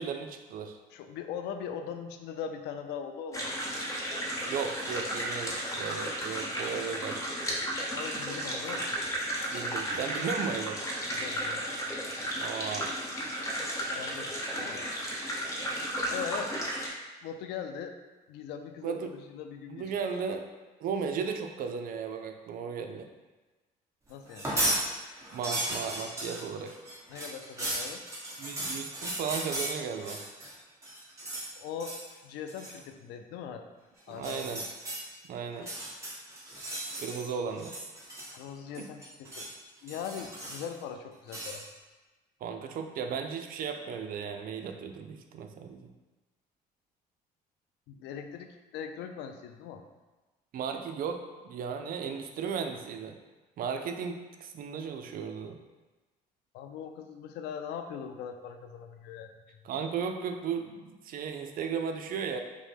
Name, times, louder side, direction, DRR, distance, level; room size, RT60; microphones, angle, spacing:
voice 1, 0.0-0.8 4.5-7.2 9.5-10.8 12.4-12.9 18.8-19.1 19.7-20.4 20.8-23.1 25.3-26.8 28.4-30.2 34.1-34.6 35.2-35.7 37.0-37.7 38.8-38.9 42.4-45.9 50.5-53.2 53.6-55.6 59.6-62.4, right 6 dB, 55° right, 5 dB, 0.4 m, -35 dB
voice 2, 0.9-3.5 7.9-8.9 11.1-11.6 13.9-14.9 16.1-16.5 17.2-17.9 18.3-19.9 24.1-24.5 27.1-28.0 31.6-33.7 34.1-34.6 38.3-39.5 39.8-41.7 47.9-49.8 56.5-59.6, left 7 dB, 85° left, 7 dB, 0.4 m, -40 dB
sound 1, 3.3-16.9, equal, 20° left, 0.8 m, -34 dB
sound 2, 24.3-24.8 25.2-30.5 30.8-31.5 31.8-32.1 32.5-32.8 34.1-35.0 35.5-37.3 37.6-38.5 38.7-39.5 39.9-40.8 41.3-41.6, right 1 dB, 15° right, 1.2 m, -35 dB
5.1 x 2.1 x 3.3 m, 1.2 s
cardioid pair, 110°, 17 cm